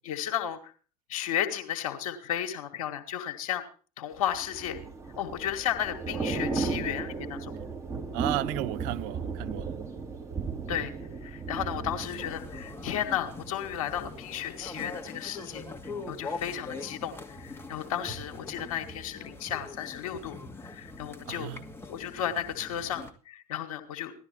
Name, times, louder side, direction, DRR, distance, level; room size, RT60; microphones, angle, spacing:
voice 1, 0.0-0.7 1.1-3.6 4.0-4.8 5.2-7.5 10.7-10.9 11.2-21.5 21.9-24.1, left 10 dB, 60° left, 1.8 m, -34 dB
Thunder / Rain, 4.3-14.2 14.6-14.8, right 4 dB, 15° right, 2.6 m, -35 dB
voice 2, 8.1-9.7 21.3-21.7, right 17 dB, 50° right, 0.7 m, -33 dB
sound 1, 12.0-23.1, left 3 dB, 10° left, 1.7 m, -42 dB
17.0 x 12.5 x 4.5 m
figure-of-eight pair, 70°, 20 cm